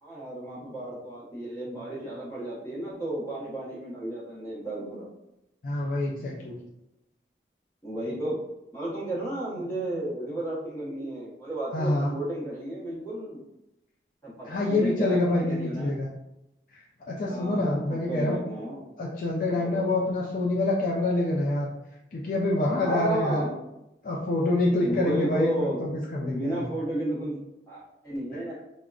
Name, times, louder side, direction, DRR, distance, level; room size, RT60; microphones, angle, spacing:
voice 1, 0.0-5.1 7.8-8.4 8.7-13.4 14.2-15.9 17.2-18.9 19.5-19.9 22.8-23.5 24.8-25.8 26.2-28.6, right 1 dB, 15° left, -7 dB, 0.8 m, -33 dB
voice 2, 5.6-6.6 11.7-12.1 14.4-16.1 16.7-18.4 19.0-21.7 22.1-23.4 24.0-25.5 25.8-26.6, left 2 dB, 50° left, -3 dB, 0.3 m, -26 dB
3.5 x 2.0 x 2.3 m, 0.90 s
head